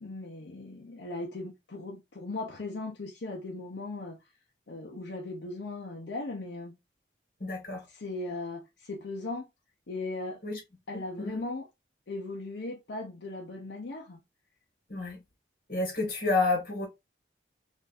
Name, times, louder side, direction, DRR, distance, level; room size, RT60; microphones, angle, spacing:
voice 1, 0.0-4.2 4.7-6.7 7.9-9.5 9.9-10.4 10.9-11.7 12.1-14.2, left 2 dB, 80° left, 0.7 m, -38 dB
voice 2, 7.4-7.8 10.4-10.6 11.2-11.4 14.9-15.2 15.7-16.9, left 3 dB, 50° left, 1.8 m, -29 dB
4.3 x 2.6 x 2.6 m
head